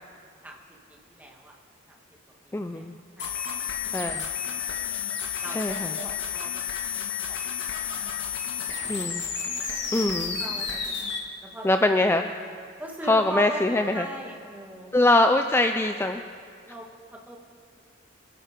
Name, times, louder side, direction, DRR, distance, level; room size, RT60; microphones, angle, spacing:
voice 1, 0.9-1.6 2.6-2.9 3.2-3.6 3.8-3.9 4.4-4.8 5.4-8.7 9.7-10.1 10.4-11.1 11.4-11.8 12.8-14.9 16.7-17.4, right 1 dB, 10° right, 0 dB, 1.9 m, -41 dB
voice 2, 2.5-3.0 3.9-4.3 5.5-5.9 8.9-9.2 9.9-10.4 11.6-12.3 13.0-14.1 14.9-16.2, left 2 dB, 10° left, 6 dB, 0.4 m, -23 dB
sound 1, 3.2-11.2, left 7 dB, 65° left, 2.1 m, -31 dB
25.5 x 11.0 x 5.2 m, 2.2 s
head